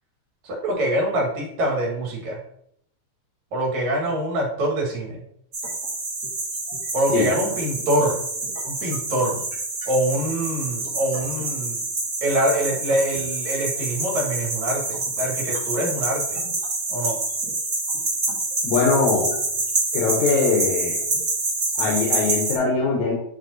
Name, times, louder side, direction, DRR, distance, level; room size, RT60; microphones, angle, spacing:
voice 1, 0.4-2.4 3.5-5.2 6.9-8.2 8.6-9.4 9.9-11.8 12.2-16.4 16.9-17.2, right 1 dB, 75° right, -1 dB, 2.9 m, -24 dB
sound 1, 5.5-22.6, right 3 dB, 40° right, 1.2 m, -27 dB
voice 2, 18.6-19.3 19.9-21.0 21.8-23.1, left 4 dB, 75° left, -2 dB, 2.4 m, -21 dB
8.6 x 3.2 x 4.0 m, 0.71 s
omnidirectional pair, 3.4 m